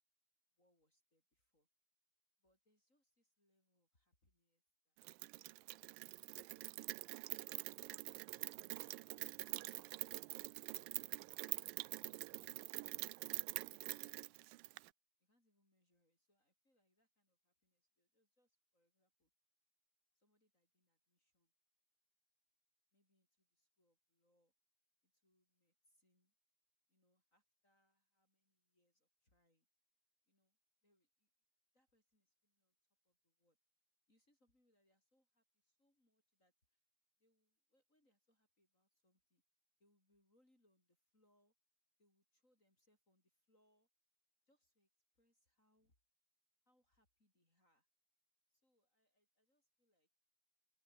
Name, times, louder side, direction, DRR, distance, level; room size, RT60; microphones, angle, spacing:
voice 1, 0.5-1.7 2.4-5.5 6.2-8.7 9.6-12.7 13.1-14.7 15.2-19.3 20.1-21.5 22.9-24.5 25.0-26.3 26.9-29.7 30.2-31.3 31.7-32.8 33.0-33.6 34.1-36.8 37.2-39.4 39.8-41.5 42.0-43.9 44.5-46.0 46.7-47.9 48.5-50.1, left 1 dB, 20° left, 7.1 m, -82 dB
Rain, 5.0-14.9, right 22 dB, 90° right, 2.3 m, -46 dB
open air
omnidirectional pair, 3.9 m